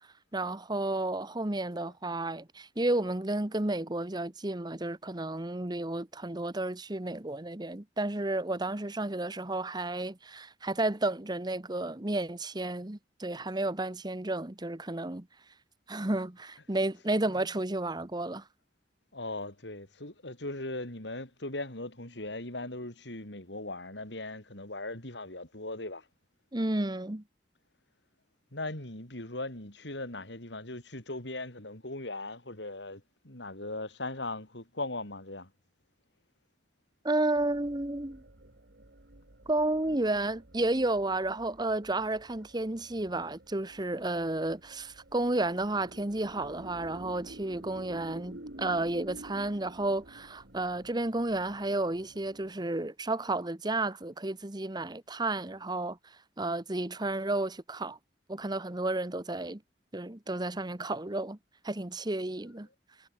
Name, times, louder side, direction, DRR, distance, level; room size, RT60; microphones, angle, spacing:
voice 1, 0.3-15.3 15.9-18.4 26.5-27.2 37.0-38.2 39.5-56.0 56.4-58.0 58.3-59.6 59.9-61.4 61.6-62.7, right 2 dB, 25° right, 1.2 m, -32 dB
voice 2, 17.1-17.6 19.1-26.1 28.5-35.5 62.6-62.7, left 2 dB, 90° left, 5.8 m, -39 dB
sound 1, 37.3-52.5, right 1 dB, 70° right, 2.6 m, -51 dB
head